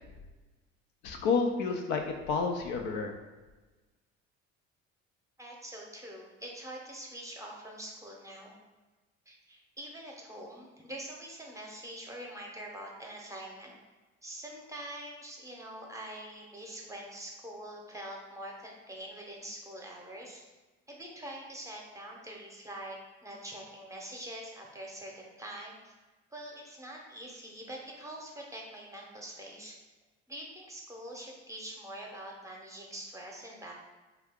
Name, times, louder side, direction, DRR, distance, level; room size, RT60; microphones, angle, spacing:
voice 1, 1.0-3.1, left 4 dB, 75° left, 3 dB, 0.5 m, -30 dB
voice 2, 5.4-8.5 9.3-13.8 14.2-20.5 20.9-25.9 26.3-29.8 30.3-33.7, right 1 dB, 10° right, -1 dB, 0.7 m, -44 dB
2.7 x 2.3 x 3.5 m, 1.2 s
supercardioid pair, 80°, 29 cm